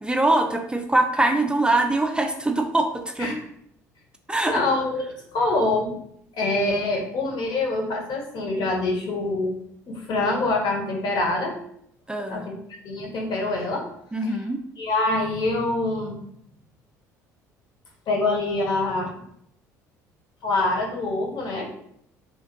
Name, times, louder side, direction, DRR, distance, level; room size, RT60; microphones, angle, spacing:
voice 1, 0.0-3.3 4.3-4.6 12.1-12.4 14.1-14.6, right 2 dB, 10° right, 5 dB, 0.4 m, -23 dB
voice 2, 4.4-5.1 5.3-6.0 6.4-9.5 9.8-11.6 12.3-12.6 12.8-13.9 14.2-14.3 14.8-16.2 18.1-19.1 20.4-21.7, left 2 dB, 50° left, 0 dB, 0.9 m, -25 dB
3.1 x 2.5 x 2.5 m, 0.71 s
figure-of-eight pair, 55°, 9 cm